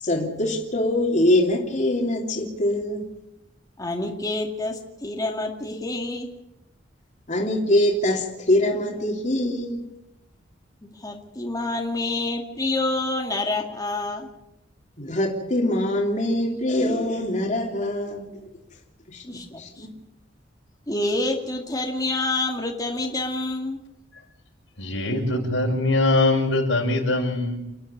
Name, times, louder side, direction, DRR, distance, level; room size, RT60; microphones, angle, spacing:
voice 1, 0.0-3.1 7.3-9.8 15.0-18.4 19.1-19.9, left 1 dB, 40° left, 0 dB, 3.1 m, -23 dB
voice 2, 3.8-6.3 10.8-14.3 19.2-19.9 20.9-23.8, left 2 dB, 20° left, 1 dB, 2.2 m, -27 dB
voice 3, 24.8-27.6, left 2 dB, 85° left, 1 dB, 5.6 m, -22 dB
29.5 x 10.5 x 9.5 m, 0.88 s
head